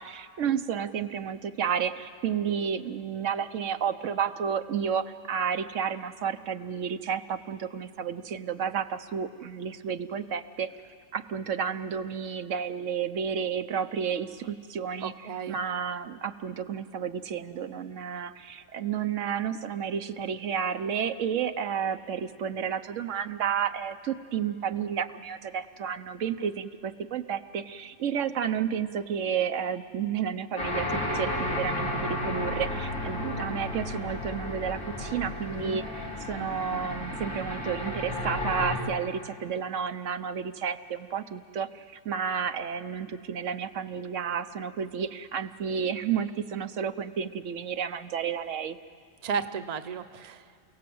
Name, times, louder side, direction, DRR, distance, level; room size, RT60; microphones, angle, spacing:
voice 1, 0.0-10.7 11.1-15.1 15.5-48.8, right 7 dB, 80° right, 9 dB, 1.1 m, -31 dB
voice 2, 15.0-15.6 35.5-35.8 49.2-50.4, right 6 dB, 40° right, 9 dB, 0.8 m, -33 dB
sound 1, 30.6-38.8, left 1 dB, 85° left, 4.7 m, -33 dB
29.0 x 17.5 x 7.8 m, 2.1 s
omnidirectional pair, 1.3 m